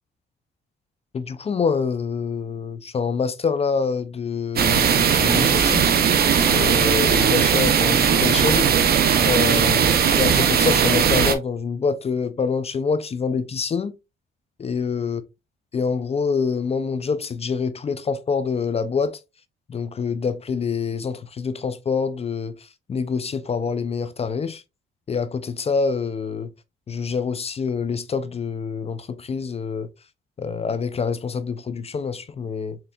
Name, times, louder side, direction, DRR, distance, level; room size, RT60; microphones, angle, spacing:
voice 1, 1.1-6.0 6.5-8.7 9.2-13.9 14.6-15.2 15.7-19.2 19.7-22.5 22.9-24.6 25.1-26.5 26.9-29.9 30.4-32.8, left 5 dB, 30° left, 0.4 m, -26 dB
sound 1, 4.6-11.3, right 7 dB, 50° right, 0.6 m, -18 dB
4.3 x 3.1 x 2.3 m
cardioid pair, 90°, 20 cm